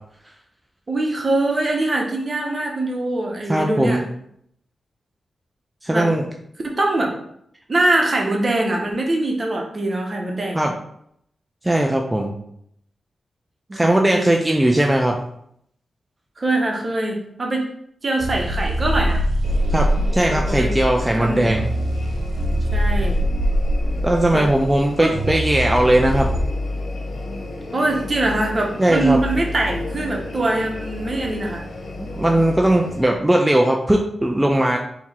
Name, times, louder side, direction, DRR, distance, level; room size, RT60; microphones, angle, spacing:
voice 1, 0.9-4.0 5.9-6.1 6.6-7.1 7.7-10.6 13.7-14.3 16.4-17.7 18.0-19.2 20.3-20.7 21.1-21.5 22.7-23.2 24.3-24.5 25.0-25.1 27.7-31.6, right 2 dB, 45° right, 0 dB, 1.1 m, -23 dB
voice 2, 3.5-4.1 5.8-6.2 10.5-10.7 11.6-12.4 13.7-15.2 19.7-21.7 24.0-26.3 28.8-29.2 32.0-34.8, right 1 dB, 15° right, 1 dB, 0.5 m, -18 dB
sound 1, 18.2-26.4, equal, 85° right, 0.6 m, -23 dB
sound 2, 19.4-33.1, left 2 dB, 70° left, 0.9 m, -30 dB
3.5 x 3.0 x 4.4 m, 0.71 s
cardioid pair, 60°, 0 cm